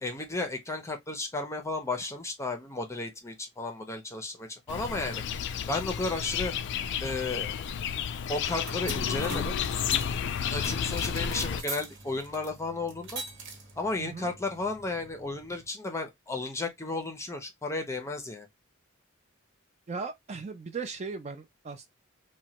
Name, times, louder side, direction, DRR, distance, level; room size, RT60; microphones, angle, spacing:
voice 1, 0.0-5.2 5.7-6.5 7.0-7.6 8.3-9.5 10.5-13.2 13.8-18.5, left 2 dB, 15° left, 0.6 m, -33 dB
sound 1, 4.7-11.6, left 8 dB, 60° left, 0.3 m, -31 dB
sound 2, 8.3-15.7, right 3 dB, 60° right, 1.0 m, -43 dB
voice 2, 19.9-21.9, right 4 dB, 35° right, 0.4 m, -37 dB
3.0 x 2.2 x 2.8 m
head